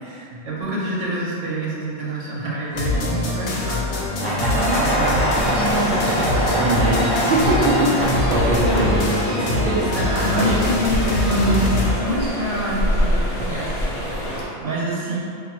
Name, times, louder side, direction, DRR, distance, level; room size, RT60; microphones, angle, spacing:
voice 1, 0.3-3.8 4.2-6.3 9.9-13.7 14.6-15.2, right 1 dB, 80° right, -6 dB, 1.1 m, -26 dB
sound 1, 2.7-11.9, left 1 dB, 70° left, 0.9 m, -23 dB
sound 2, 3.9-8.8, equal, 30° right, 0.8 m, -24 dB
sound 3, 5.3-14.4, equal, 45° left, 0.5 m, -27 dB
voice 2, 6.6-10.0 10.4-10.6, right 1 dB, 60° right, -4 dB, 0.7 m, -23 dB
2.8 x 2.5 x 4.2 m, 2.6 s
omnidirectional pair, 1.2 m